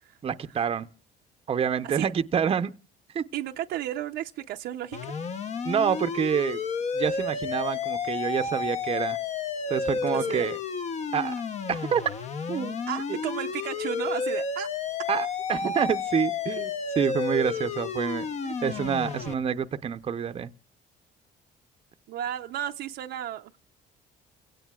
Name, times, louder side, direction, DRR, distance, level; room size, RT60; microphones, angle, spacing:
voice 1, 0.2-0.9 1.5-2.7 3.1-3.3 5.6-6.6 6.9-9.2 9.7-10.6 11.1-11.3 11.7-12.0 12.5-12.7 15.1-16.7 17.0-18.3 18.6-20.5, right 7 dB, 35° right, 0.6 m, -27 dB
voice 2, 3.3-5.0 10.1-10.5 12.9-14.7 15.0-15.1 18.4-18.5 22.1-23.5, right 12 dB, 75° right, 0.6 m, -33 dB
sound 1, 4.9-19.3, left 5 dB, 40° left, 0.8 m, -31 dB
29.5 x 16.5 x 2.3 m
cardioid pair, 110°, 17 cm